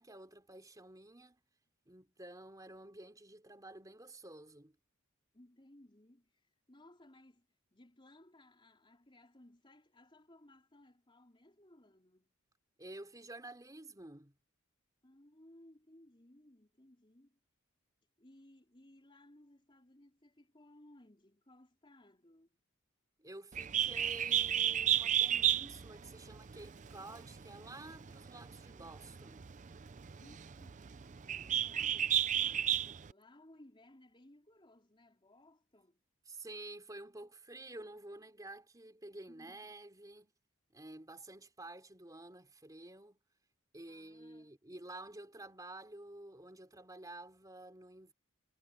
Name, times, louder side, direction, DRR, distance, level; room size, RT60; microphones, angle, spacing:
voice 1, 0.0-1.4 1.9-4.7 12.8-14.3 23.2-29.4 31.3-31.9 36.3-40.3 40.7-43.2 43.7-48.1, right 2 dB, 15° right, 3.4 m, -51 dB
voice 2, 5.3-6.4 6.7-12.4 15.0-17.4 18.2-22.5 30.2-31.1 31.4-32.8 33.1-36.0 39.3-39.7 43.9-44.5, left 1 dB, 25° left, 4.0 m, -62 dB
Bird, 23.5-33.1, right 10 dB, 35° right, 0.5 m, -33 dB
head